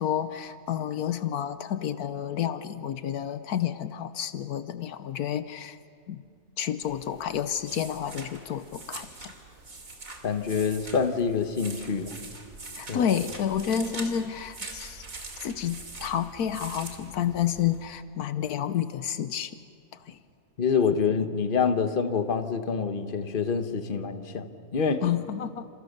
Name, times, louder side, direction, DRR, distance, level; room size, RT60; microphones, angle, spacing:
voice 1, 0.0-5.8 6.1-6.2 6.6-9.3 12.7-15.0 15.4-19.5 20.0-20.2 25.0-25.7, left 9 dB, 80° left, 12 dB, 1.3 m, -30 dB
sound 1, 6.8-17.8, right 3 dB, 60° right, 3.2 m, -43 dB
voice 2, 10.2-12.1 12.9-13.1 20.6-25.0, left 6 dB, 35° left, 8 dB, 1.3 m, -26 dB
28.5 x 28.0 x 6.7 m, 2.3 s
omnidirectional pair, 1.6 m